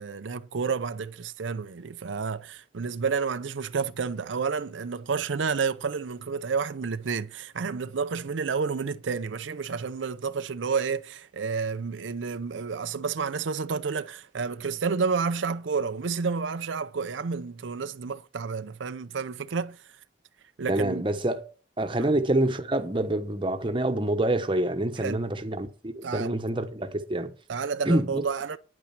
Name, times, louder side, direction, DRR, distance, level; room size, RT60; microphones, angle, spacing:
voice 1, 0.0-19.8 20.6-21.0 22.0-22.1 25.0-25.2 26.0-26.4 27.5-28.6, right 5 dB, 85° right, 0.6 m, -30 dB
voice 2, 20.7-21.4 21.8-27.3 27.9-28.2, right 1 dB, 25° right, 1.0 m, -26 dB
9.8 x 8.8 x 5.8 m
head